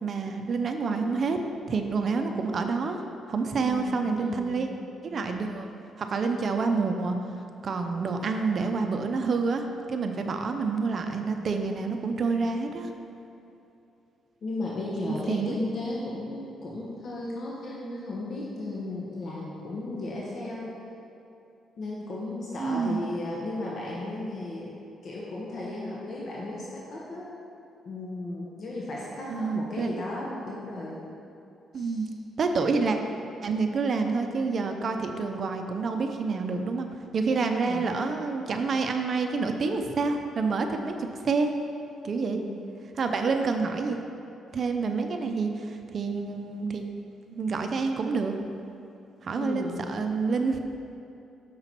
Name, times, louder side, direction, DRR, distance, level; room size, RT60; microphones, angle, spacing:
voice 1, 0.0-1.4 1.7-3.0 3.3-4.7 5.0-7.2 7.6-12.9 15.3-15.6 22.6-23.0 29.3-30.0 31.7-32.1 32.4-33.0 33.4-36.9 37.1-41.5 42.0-42.4 42.9-44.0 44.5-46.8 47.3-48.3 49.2-50.6, right 4 dB, 50° right, 5 dB, 0.5 m, -28 dB
voice 2, 3.6-4.6 14.4-20.8 21.8-24.8 25.0-27.4 27.8-31.0 31.7-32.1 37.3-38.0 42.3-42.5 49.4-49.9, left 2 dB, 55° left, -4 dB, 1.0 m, -35 dB
6.7 x 5.6 x 4.5 m, 2.8 s
cardioid pair, 90°, 0 cm